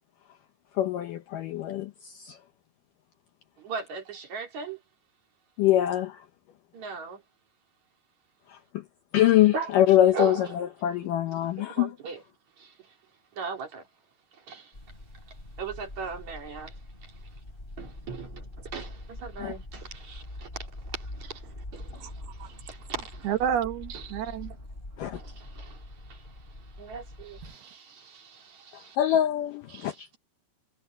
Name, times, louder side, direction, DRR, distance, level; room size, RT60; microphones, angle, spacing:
voice 1, 0.8-2.4 5.6-6.3 8.5-8.8 9.1-11.9 19.4-19.5 25.0-25.2 29.0-30.1, left 12 dB, 75° left, 2.0 m, -24 dB
voice 2, 3.6-4.8 6.7-7.2 9.5-9.7 10.1-10.5 11.7-12.2 12.6-12.7 13.3-13.8 14.3-14.7 15.6-16.7 17.8-20.7 20.9-22.1 22.4-23.3 24.2-24.3 25.1-25.8 26.1-26.3 26.8-29.0 29.7-30.0, right 5 dB, 45° right, 3.9 m, -38 dB
sound 1, 14.7-27.5, left 1 dB, 10° left, 4.5 m, -44 dB
voice 3, 23.2-24.6 27.4-27.6, right 9 dB, 70° right, 3.1 m, -30 dB
omnidirectional pair, 4.8 m